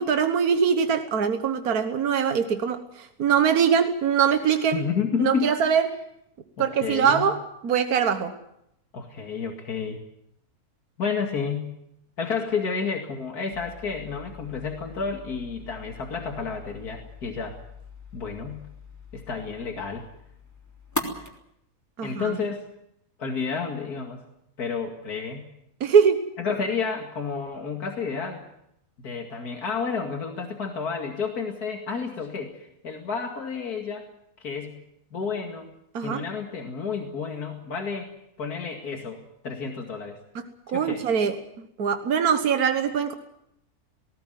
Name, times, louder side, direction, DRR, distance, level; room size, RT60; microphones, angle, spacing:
voice 1, 0.0-4.8 5.2-5.9 6.6-7.3 7.6-8.3 22.0-22.4 25.8-26.3 35.9-36.2 40.7-41.3 41.8-43.1, right 7 dB, 75° right, 7 dB, 1.7 m, -22 dB
voice 2, 4.7-5.6 6.6-7.3 8.9-10.0 11.0-11.7 12.2-17.6 18.1-18.7 19.1-20.1 22.0-22.7 23.2-24.2 24.6-25.5 26.4-28.4 29.0-34.1 34.4-34.8 35.1-35.7 36.0-38.1 38.4-40.2 40.7-41.0, left 5 dB, 80° left, 3 dB, 2.8 m, -30 dB
sound 1, 13.5-21.3, left 2 dB, 10° left, 3.6 m, -40 dB
19.0 x 19.0 x 9.3 m, 0.79 s
omnidirectional pair, 1.6 m